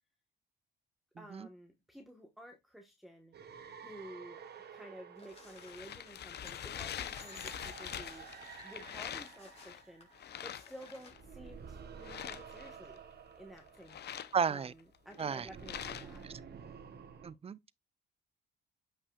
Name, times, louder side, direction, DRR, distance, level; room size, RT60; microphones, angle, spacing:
voice 1, 1.2-3.3 3.8-4.4 4.7-10.1 10.4-13.0 13.4-14.2 14.5-16.3, equal, ahead, 1.2 m, -52 dB
sound 1, 3.3-10.7 11.0-17.3, right 6 dB, 55° right, 1.2 m, -52 dB
sound 2, 5.2-11.1, left 3 dB, 30° left, 4.0 m, -57 dB
sound 3, 5.3-9.8 10.1-11.2 12.0-13.0 13.6-16.3, left 9 dB, 55° left, 0.7 m, -44 dB
voice 2, 14.3-14.7 15.2-15.5 16.2-16.6 17.2-17.6, right 6 dB, 30° right, 0.5 m, -34 dB
8.5 x 5.5 x 2.3 m
cardioid pair, 90°, 20 cm